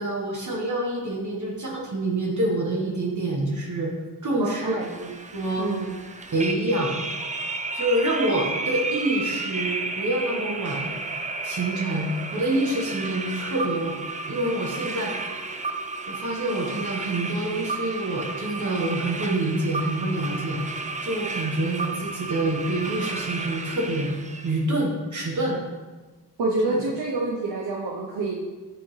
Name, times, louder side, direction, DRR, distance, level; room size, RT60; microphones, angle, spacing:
voice 1, 0.0-3.9 4.2-5.7 6.3-7.0 7.7-10.9 11.4-13.9 14.3-15.1 16.1-20.6 21.0-24.1 24.4-25.6 26.6-26.8, right 1 dB, 45° right, -2 dB, 1.3 m, -27 dB
voice 2, 4.4-4.9 5.6-5.9 26.4-28.3, right 2 dB, 65° right, -2 dB, 0.9 m, -27 dB
sound 1, 4.8-24.6, right 3 dB, 20° right, 0.5 m, -32 dB
9.1 x 3.5 x 3.2 m, 1.3 s
cardioid pair, 75°, 41 cm